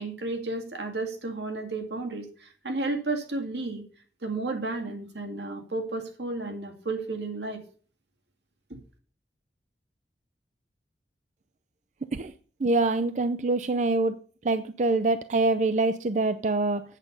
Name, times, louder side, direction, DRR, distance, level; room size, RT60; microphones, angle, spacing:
voice 1, 0.0-3.8 4.2-7.6 8.7-8.8, right 3 dB, 80° right, 4 dB, 2.2 m, -32 dB
voice 2, 12.6-14.1 14.4-16.8, right 2 dB, 40° right, 11 dB, 0.5 m, -25 dB
8.3 x 8.0 x 5.4 m, 0.41 s
head